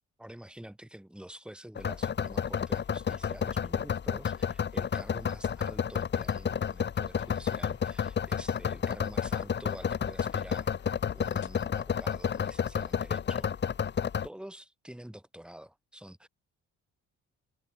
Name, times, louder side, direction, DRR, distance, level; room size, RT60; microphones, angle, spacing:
voice 1, 0.2-13.5 14.2-16.3, right 1 dB, 5° right, 1.9 m, -48 dB
sound 1, 1.8-14.3, left 7 dB, 35° left, 0.8 m, -31 dB
sound 2, 7.2-12.7, left 11 dB, 70° left, 4.0 m, -53 dB
cardioid pair, 90°, 30 cm